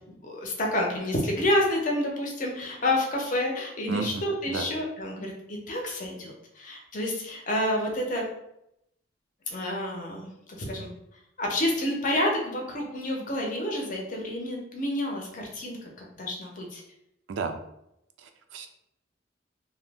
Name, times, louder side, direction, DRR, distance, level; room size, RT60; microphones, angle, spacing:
voice 1, 0.1-8.2 9.5-10.9 11.4-16.8, left 1 dB, 45° left, -1 dB, 0.6 m, -29 dB
voice 2, 3.9-4.7 17.3-17.6 18.2-18.7, right 4 dB, 75° right, 7 dB, 0.3 m, -32 dB
2.7 x 2.0 x 3.3 m, 0.81 s
head